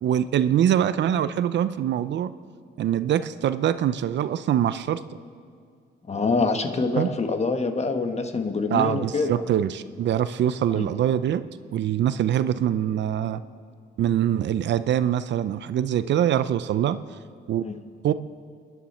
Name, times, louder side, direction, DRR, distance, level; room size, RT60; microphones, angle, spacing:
voice 1, 0.0-2.3 2.8-5.0 7.0-7.1 8.7-11.4 11.7-13.4 14.0-17.0 17.5-17.6 18.0-18.1, right 10 dB, 65° right, 13 dB, 0.6 m, -23 dB
voice 2, 6.1-9.4 10.7-10.9 17.6-17.8, left 3 dB, 35° left, 6 dB, 1.4 m, -25 dB
30.0 x 11.0 x 4.4 m, 2.1 s
cardioid pair, 90°, 20 cm